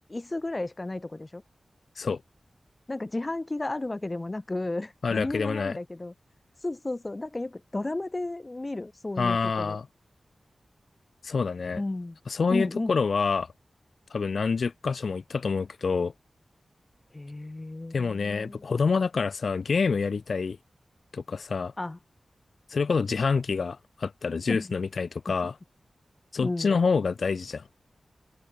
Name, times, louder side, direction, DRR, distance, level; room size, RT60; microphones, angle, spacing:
voice 1, 0.0-1.4 2.9-6.1 6.6-9.8 11.7-12.2 12.5-13.0 17.1-18.7 21.8-22.0 24.5-24.7 26.4-26.7, left 2 dB, 25° left, 3.6 m, -33 dB
voice 2, 5.0-5.8 9.2-9.9 11.2-11.8 12.3-13.5 14.1-16.1 17.9-20.6 21.1-21.7 22.7-25.6 26.3-27.6, left 5 dB, 65° left, 4.0 m, -27 dB
open air
wide cardioid pair, 125°, 0 cm